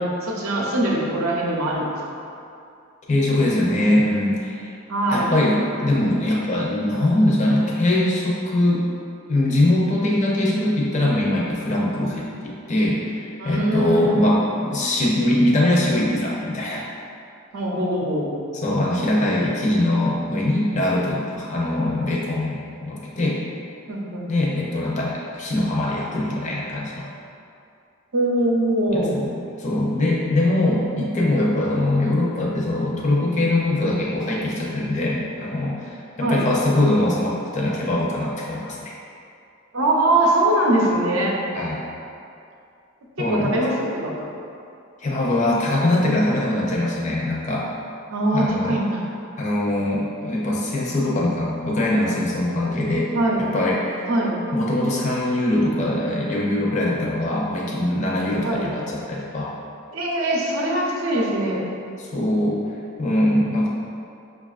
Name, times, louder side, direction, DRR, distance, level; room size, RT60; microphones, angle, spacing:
voice 1, 0.0-1.9 4.9-5.3 13.4-14.2 17.5-18.3 23.9-24.3 28.1-29.1 30.5-31.2 36.2-36.4 39.7-41.3 43.2-44.3 48.1-49.0 53.1-53.4 54.1-54.4 58.4-58.6 59.9-61.6, right 1 dB, 80° right, -3 dB, 0.6 m, -22 dB
voice 2, 3.1-4.7 5.1-8.9 9.3-16.9 18.6-23.4 24.3-27.1 28.9-29.3 29.6-38.9 41.5-41.8 43.2-43.5 45.0-47.7 48.3-48.8 49.4-53.1 53.4-54.1 54.5-59.5 62.1-62.6 63.0-63.7, left 1 dB, 35° left, -4 dB, 0.5 m, -22 dB
5.3 x 2.3 x 2.4 m, 2.5 s
head